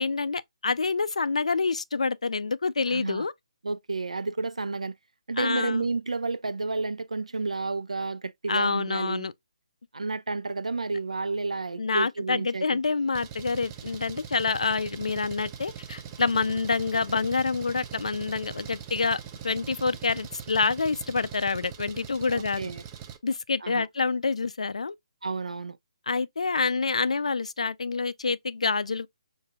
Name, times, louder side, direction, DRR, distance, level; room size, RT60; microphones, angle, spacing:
voice 1, 0.0-3.3 5.4-5.9 8.5-9.3 11.8-22.6 23.2-25.0 26.1-29.1, left 4 dB, 75° left, 0.3 m, -27 dB
voice 2, 2.9-3.3 3.6-4.9 5.3-9.3 9.9-12.8 22.3-22.8 23.6-23.9 25.2-25.8, right 3 dB, 85° right, 0.3 m, -31 dB
Engine, 13.1-23.2, right 8 dB, 20° right, 0.4 m, -42 dB
4.8 x 2.6 x 2.2 m
figure-of-eight pair, 150°, 3 cm